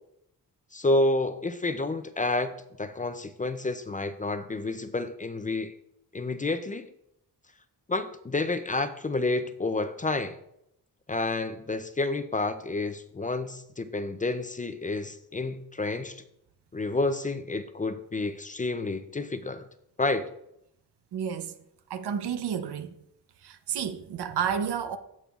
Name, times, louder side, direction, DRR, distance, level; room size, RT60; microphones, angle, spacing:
voice 1, 0.7-5.7 6.1-6.9 7.9-10.4 11.1-16.2 16.7-19.6 20.0-20.3, left 2 dB, 20° left, 0.4 m, -29 dB
voice 2, 21.1-21.6 21.9-22.9 23.4-25.0, right 8 dB, 90° right, 0.8 m, -31 dB
15.5 x 5.5 x 2.4 m
wide cardioid pair, 125°, 38 cm